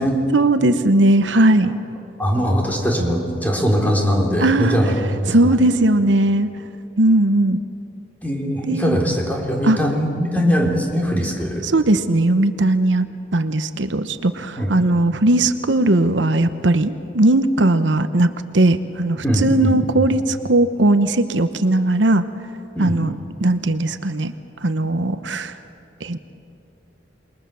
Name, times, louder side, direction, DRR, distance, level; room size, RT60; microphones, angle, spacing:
voice 1, 0.3-1.7 4.4-4.8 5.3-6.5 7.0-7.6 8.7-9.0 9.6-9.8 11.6-13.1 13.3-22.2 22.8-23.1 23.4-24.3 24.6-25.5 26.0-26.2, right 2 dB, 90° right, 10 dB, 1.0 m, -18 dB
voice 2, 2.2-5.5 8.2-11.7 14.6-14.7 19.2-20.1 22.8-23.0, equal, 10° left, -1 dB, 3.7 m, -21 dB
28.0 x 21.5 x 7.0 m, 2.6 s
head